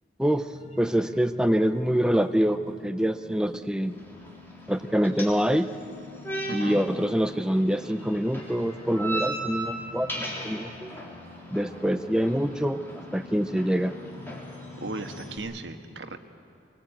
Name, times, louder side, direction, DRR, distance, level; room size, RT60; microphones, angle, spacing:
sound 1, 0.5-15.4, left 3 dB, 40° left, 5.7 m, -46 dB
voice 1, 0.8-3.9 4.7-5.7 6.5-10.9 11.5-12.8 13.1-13.9, equal, 5° right, 8 dB, 0.5 m, -25 dB
sound 2, 3.9-15.4, right 2 dB, 10° left, 3.7 m, -38 dB
voice 2, 6.4-6.8 14.8-16.2, right 2 dB, 80° right, 7 dB, 1.5 m, -36 dB
24.0 x 20.0 x 9.0 m, 2.5 s
head